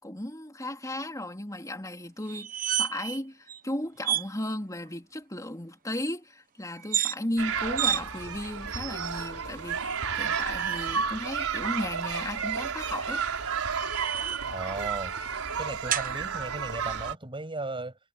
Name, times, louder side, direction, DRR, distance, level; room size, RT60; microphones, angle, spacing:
voice 1, 0.0-13.2, left 1 dB, 15° left, 3.9 m, -35 dB
sound 1, 2.3-3.2 3.5-3.6 4.0-4.3 6.8-7.2 7.8-8.0 8.7-9.3 10.2-11.1 12.9-14.6 15.9-16.1, right 10 dB, 40° right, 1.0 m, -31 dB
sound 2, 7.4-17.1, right 6 dB, 70° right, 5.5 m, -32 dB
voice 2, 14.5-15.1 15.6-18.0, right 2 dB, 25° right, 7.1 m, -36 dB
head